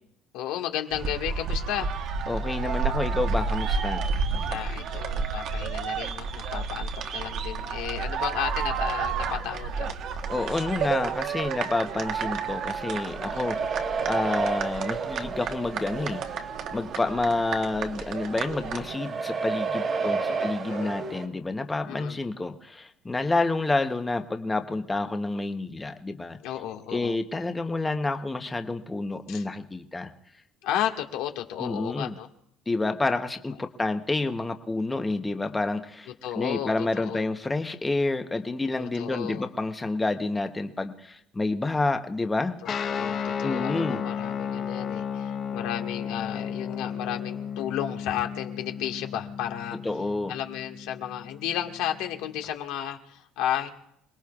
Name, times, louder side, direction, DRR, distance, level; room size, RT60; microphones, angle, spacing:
voice 1, 0.3-1.9 4.5-9.9 13.2-13.5 17.0-17.2 19.8-20.9 21.9-22.2 26.4-27.2 29.3-29.5 30.6-32.3 36.2-37.3 38.7-39.4 42.6-49.8 50.3-53.7, left 11 dB, 80° left, 4 dB, 1.7 m, -33 dB
sound 1, 0.9-18.9, right 5 dB, 50° right, 1.2 m, -31 dB
voice 2, 2.3-4.0 10.3-16.2 16.7-26.4 26.9-30.1 31.6-32.1 32.7-36.1 36.3-42.6 43.4-44.0 49.8-50.3, left 2 dB, 10° left, 7 dB, 0.9 m, -29 dB
sound 2, 11.9-21.3, right 4 dB, 30° right, 1.7 m, -33 dB
Guitar, 42.6-52.5, left 7 dB, 35° left, 0.9 m, -34 dB
28.0 x 20.0 x 2.4 m, 0.74 s
cardioid pair, 155°, 0 cm